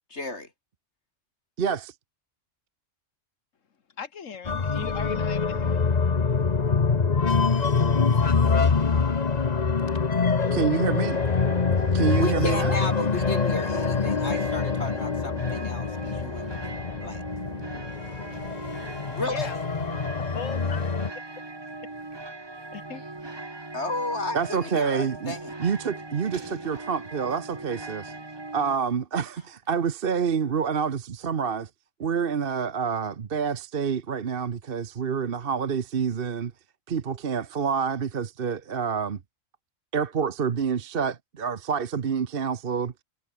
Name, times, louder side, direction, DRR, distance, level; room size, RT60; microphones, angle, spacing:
voice 1, 0.1-0.5 12.2-16.5 16.9-17.2 19.1-19.5 23.7-25.5, left 2 dB, 60° left, 4.2 m, -32 dB
voice 2, 1.6-1.9 10.5-11.2 11.9-12.8 24.3-28.1 28.5-31.7 32.0-36.5 36.9-39.2 39.9-42.9, right 6 dB, 50° right, 1.1 m, -27 dB
voice 3, 4.0-5.9 17.7-17.9 19.3-19.5 20.1-20.9 22.7-23.0, left 6 dB, 80° left, 1.8 m, -38 dB
sound 1, 4.4-21.1, left 5 dB, 35° left, 1.1 m, -25 dB
sound 2, 11.1-28.8, right 2 dB, 20° right, 1.6 m, -40 dB
omnidirectional pair, 1.3 m